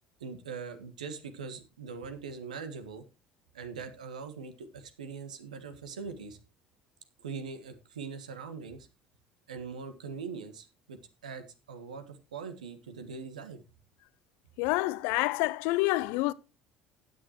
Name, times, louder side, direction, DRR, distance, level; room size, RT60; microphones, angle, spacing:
voice 1, 0.2-3.0 3.5-6.4 7.2-8.9 9.5-13.6, right 5 dB, 75° right, 1.5 m, -42 dB
voice 2, 14.6-16.3, left 20 dB, 60° left, 0.6 m, -28 dB
15.5 x 9.4 x 2.9 m
figure-of-eight pair, 55°, 4 cm